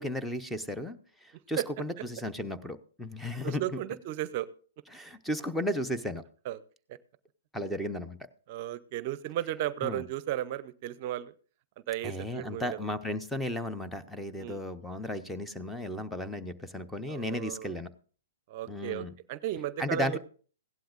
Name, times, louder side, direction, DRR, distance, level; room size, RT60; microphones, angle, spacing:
voice 1, 0.0-3.8 4.9-6.2 7.5-8.3 9.8-10.0 12.0-17.9 18.7-19.1 19.8-20.2, left 1 dB, 5° left, 11 dB, 0.8 m, -34 dB
voice 2, 3.4-4.5 6.4-6.6 6.9-7.0 8.5-11.3 11.9-12.9 14.4-14.6 17.1-17.7 18.5-20.2, right 13 dB, 45° right, 17 dB, 0.6 m, -34 dB
16.5 x 11.5 x 2.5 m, 0.42 s
hypercardioid pair, 130°, 0 cm